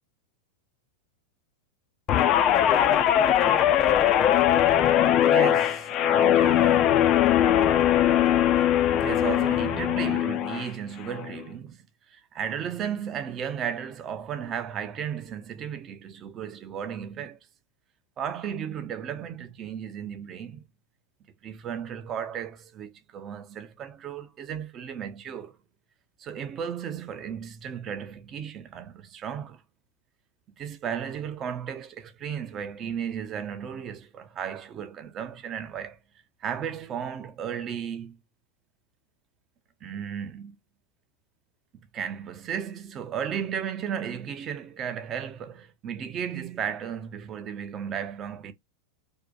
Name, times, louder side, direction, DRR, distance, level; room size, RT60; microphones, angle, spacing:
Guitar, 2.1-10.7 11.1-11.4, left 11 dB, 35° left, 0.3 m, -21 dB
voice 1, 5.2-7.0 8.9-17.4 18.2-20.6 21.4-25.6 26.2-29.6 30.6-36.0 36.4-38.2 39.8-40.6 41.9-48.5, right 8 dB, 30° right, 0.5 m, -34 dB
2.7 x 2.1 x 2.4 m
figure-of-eight pair, 90°, 0 cm